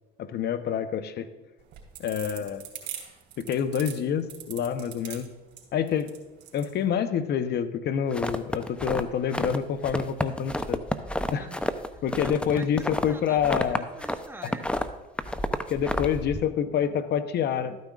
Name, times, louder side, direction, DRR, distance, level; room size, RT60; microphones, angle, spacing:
voice 1, 0.2-1.3 2.0-2.6 3.4-5.3 5.7-6.1 6.5-10.8 11.3-11.4 12.0-13.8 14.4-14.5 15.7-17.8, left 8 dB, 55° left, 10 dB, 0.9 m, -27 dB
sound 1, 1.6-6.7, right 10 dB, 60° right, 2.7 m, -41 dB
sound 2, 8.1-9.6 9.8-14.2 14.4-16.4, left 1 dB, 5° left, 0.6 m, -30 dB
voice 2, 11.3-14.8, right 2 dB, 10° right, 6 dB, 1.1 m, -46 dB
13.0 x 9.2 x 2.4 m, 1.1 s
supercardioid pair, 75°, 20 cm